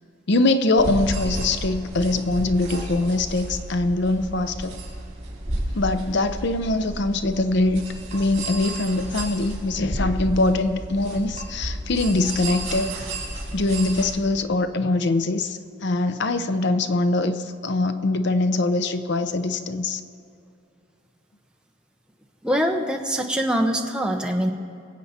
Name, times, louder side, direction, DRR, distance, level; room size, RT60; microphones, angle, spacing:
voice 1, 0.3-4.8 5.7-7.8 8.1-13.1 13.5-20.0, left 2 dB, 55° left, 10 dB, 0.6 m, -23 dB
sound 1, 0.8-14.1, right 1 dB, 35° right, 3.8 m, -32 dB
voice 2, 22.4-24.5, equal, 5° right, 2 dB, 0.9 m, -23 dB
22.5 x 8.3 x 4.3 m, 2.5 s
head